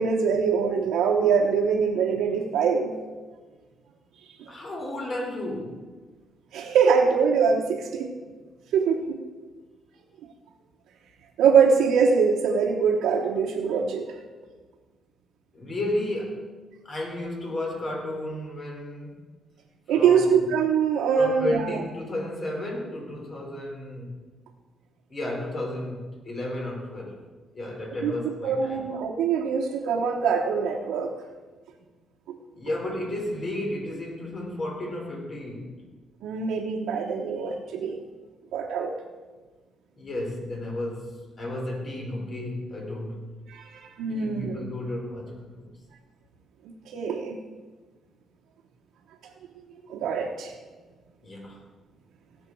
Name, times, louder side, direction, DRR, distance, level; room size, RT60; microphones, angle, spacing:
voice 1, 0.0-3.0 6.5-8.1 8.7-9.2 11.4-14.1 19.9-21.8 28.0-28.1 28.4-31.1 32.3-32.4 36.2-38.0 38.5-38.9 43.5-44.6 46.9-47.4 49.6-49.7 49.9-50.5, right 6 dB, 85° right, -1 dB, 1.2 m, -23 dB
voice 2, 4.5-5.9 15.5-16.6 16.8-19.3 19.9-20.4 21.2-24.2 25.1-27.2 27.5-28.8 32.5-35.8 40.0-43.4 44.1-45.7 51.2-51.6, left 1 dB, 45° left, -1 dB, 4.2 m, -33 dB
17.0 x 7.4 x 4.7 m, 1.3 s
cardioid pair, 90°, 0 cm